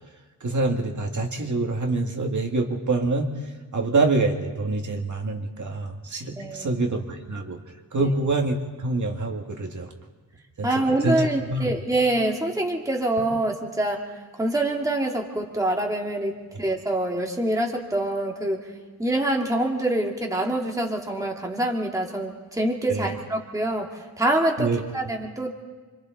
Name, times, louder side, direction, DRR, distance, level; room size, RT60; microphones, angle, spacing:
voice 1, 0.4-3.3 3.7-7.6 7.9-9.9 10.6-10.7 11.0-11.2 11.5-11.7 22.9-23.1 24.6-24.8, right 3 dB, 50° right, 2 dB, 2.0 m, -25 dB
voice 2, 6.4-6.8 8.0-8.1 10.6-14.1 14.4-18.6 19.0-25.5, right 1 dB, 10° right, 0 dB, 1.9 m, -25 dB
29.5 x 25.0 x 4.0 m, 1.3 s
wide cardioid pair, 165°, 37 cm